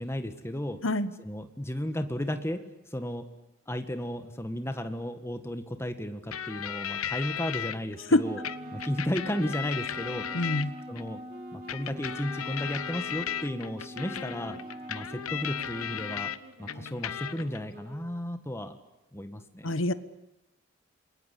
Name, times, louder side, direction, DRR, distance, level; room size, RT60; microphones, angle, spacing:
voice 1, 0.0-0.8 1.2-2.6 2.9-3.3 3.7-8.4 8.7-10.3 10.9-11.2 11.5-14.6 14.9-16.3 16.6-18.7 19.1-19.7, equal, 10° left, 8 dB, 1.7 m, -34 dB
sound 1, 6.3-7.8 8.4-11.0 11.7-16.4 16.7-17.6, left 9 dB, 85° left, 1.0 m, -36 dB
sound 2, 7.9-18.3, right 1 dB, 45° right, 3.2 m, -50 dB
Wind instrument woodwind instrument, 8.2-16.3, equal, 25° right, 2.6 m, -44 dB
voice 2, 10.3-10.7 19.6-19.9, left 1 dB, 65° left, 13 dB, 1.2 m, -25 dB
28.5 x 22.0 x 8.4 m, 0.98 s
head